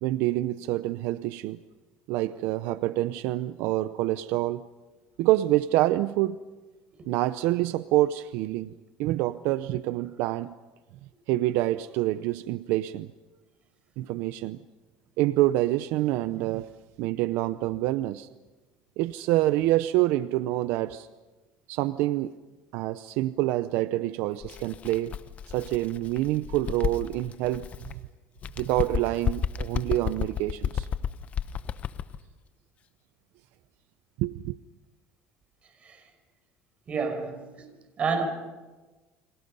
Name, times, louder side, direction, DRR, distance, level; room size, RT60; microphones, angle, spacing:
voice 1, 0.0-1.6 2.1-4.6 5.2-6.4 7.1-10.5 11.3-13.1 14.0-14.6 15.2-16.7 17.0-18.3 19.0-21.1 21.7-22.3 22.7-25.1 25.5-28.0 28.6-30.9 34.2-34.6, right 16 dB, 75° right, 0.7 m, -27 dB
Bird, 24.4-28.0 28.4-32.2, left 8 dB, 40° left, 0.9 m, -32 dB
voice 2, 36.9-37.7 38.0-38.3, right 5 dB, 35° right, 5.8 m, -29 dB
29.5 x 26.0 x 5.5 m
cardioid pair, 125°, 4 cm